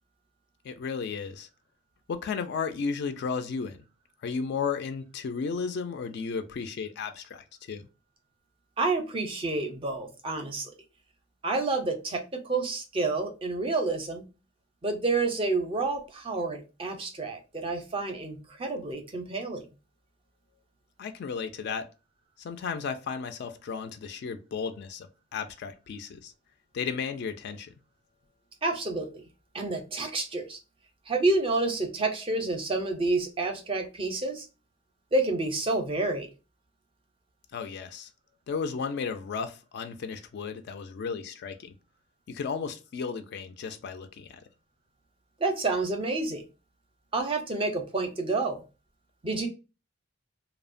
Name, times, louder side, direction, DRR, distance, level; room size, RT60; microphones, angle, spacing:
voice 1, 0.6-1.5 2.1-3.8 4.2-7.8 21.0-21.9 22.4-26.3 26.7-27.7 37.5-38.1 38.5-41.7 42.3-44.4, left 5 dB, 55° left, 0.3 m, -34 dB
voice 2, 8.8-10.7 11.4-14.3 14.8-19.6 28.6-29.1 29.5-30.6 31.1-34.5 35.1-36.3 45.4-46.4 47.1-48.6 49.2-49.5, right 3 dB, 25° right, 0.5 m, -29 dB
2.8 x 2.0 x 2.4 m
head